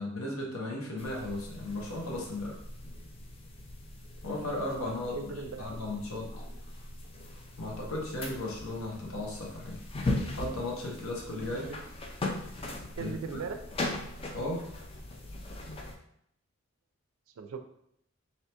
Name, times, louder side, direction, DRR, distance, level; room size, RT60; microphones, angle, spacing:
voice 1, 0.0-2.6 4.2-5.2 5.6-6.3 7.6-9.8 10.3-11.7 13.0-13.1 14.3-14.7, left 1 dB, 75° left, -1 dB, 0.9 m, -35 dB
sound 1, 1.0-16.0, left 2 dB, 25° left, 0.3 m, -39 dB
voice 2, 5.1-5.7 11.5-11.8 13.0-13.6 17.4-17.6, right 4 dB, 70° right, 7 dB, 0.4 m, -38 dB
3.3 x 2.7 x 2.8 m, 0.73 s
head